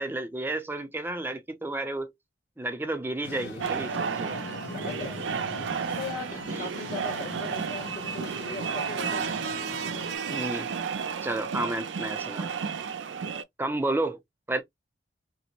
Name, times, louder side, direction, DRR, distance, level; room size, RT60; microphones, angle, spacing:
voice 1, 0.0-2.1 2.6-4.3 6.5-6.7 10.3-10.7 11.2-12.5 13.6-14.2 14.5-14.6, right 2 dB, 10° right, 0.5 m, -31 dB
Entre a maré e o arrocha, 3.2-10.2, left 2 dB, 85° left, 1.0 m, -41 dB
sound 1, 3.6-13.4, right 6 dB, 85° right, 0.5 m, -32 dB
voice 2, 4.1-5.4 5.9-9.2, left 3 dB, 60° left, 1.9 m, -39 dB
3.7 x 2.1 x 2.9 m
head